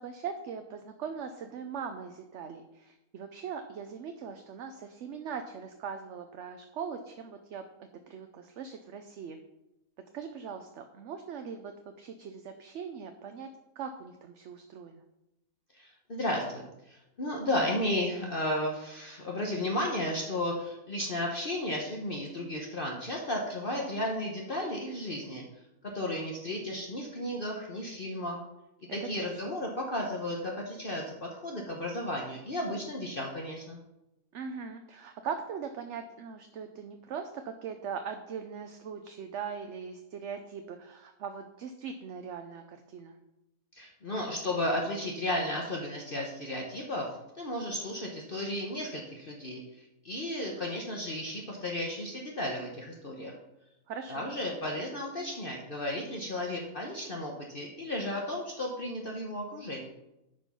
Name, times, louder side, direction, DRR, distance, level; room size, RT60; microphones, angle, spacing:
voice 1, 0.0-7.6 8.1-9.4 10.1-13.5 13.8-15.0 28.9-29.4 34.3-43.2 53.9-54.3, right 6 dB, 60° right, 7 dB, 0.9 m, -40 dB
voice 2, 15.7-25.4 25.9-28.4 28.9-33.8 43.7-47.1 47.4-53.3 54.1-59.9, left 1 dB, 40° left, 0 dB, 1.2 m, -34 dB
9.6 x 5.3 x 5.6 m, 0.91 s
omnidirectional pair, 1.5 m